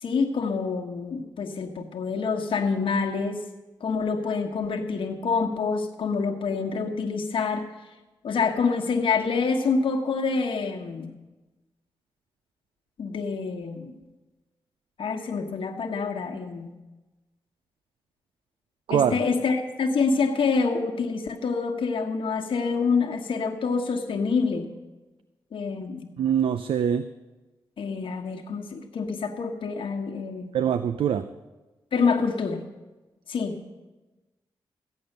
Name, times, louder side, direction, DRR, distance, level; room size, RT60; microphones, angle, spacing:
voice 1, 0.0-3.5 3.8-7.7 8.2-11.1 13.0-14.0 15.0-16.7 18.9-24.7 25.5-26.1 27.8-30.6 31.9-32.6 33.3-33.6, left 4 dB, 75° left, 2 dB, 1.4 m, -27 dB
voice 2, 26.2-27.1 30.5-31.3, right 8 dB, 80° right, 11 dB, 0.5 m, -23 dB
15.0 x 8.7 x 6.6 m, 1.1 s
cardioid pair, 50°, 9 cm